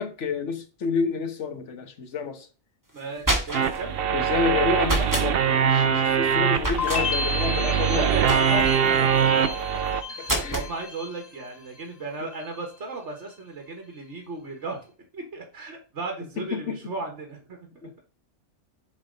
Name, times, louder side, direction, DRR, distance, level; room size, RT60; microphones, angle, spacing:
voice 1, 0.0-2.5 4.1-8.1 9.6-10.6 16.4-16.8 17.8-18.0, left 5 dB, 85° left, 1.4 m, -29 dB
voice 2, 2.9-3.9 7.5-9.3 10.1-14.8 15.1-17.6, right 2 dB, 80° right, 1.8 m, -35 dB
sound 1, 3.0-3.8 4.8-5.3 6.6-7.0 8.3-8.8 10.2-10.7, right 1 dB, 15° right, 1.6 m, -27 dB
sound 2, 3.5-10.0, right 7 dB, 60° right, 0.9 m, -23 dB
sound 3, 6.8-11.8 12.1-12.8, left 5 dB, 35° left, 1.1 m, -33 dB
7.1 x 3.6 x 5.3 m
omnidirectional pair, 1.2 m